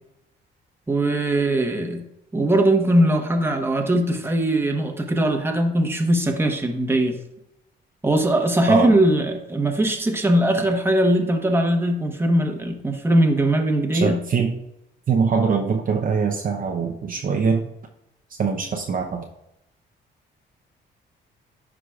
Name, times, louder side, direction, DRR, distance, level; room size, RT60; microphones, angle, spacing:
voice 1, 0.9-2.0 2.3-7.2 8.0-14.2, right 1 dB, 10° right, 3 dB, 1.2 m, -20 dB
voice 2, 13.9-14.5 15.1-17.7 18.4-19.3, right 5 dB, 45° right, 2 dB, 0.8 m, -22 dB
11.0 x 4.9 x 2.4 m, 0.85 s
cardioid pair, 90°, 20 cm